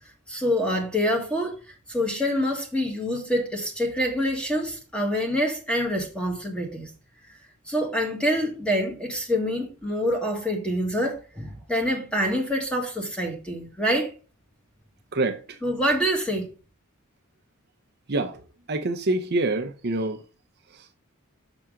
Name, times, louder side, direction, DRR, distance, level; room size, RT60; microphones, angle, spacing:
voice 1, 0.3-1.6 1.9-6.9 7.7-14.1 15.6-16.5, equal, 5° left, 1.5 m, -26 dB
voice 2, 18.7-20.2, right 2 dB, 50° right, 0.7 m, -25 dB
6.1 x 5.8 x 3.6 m
head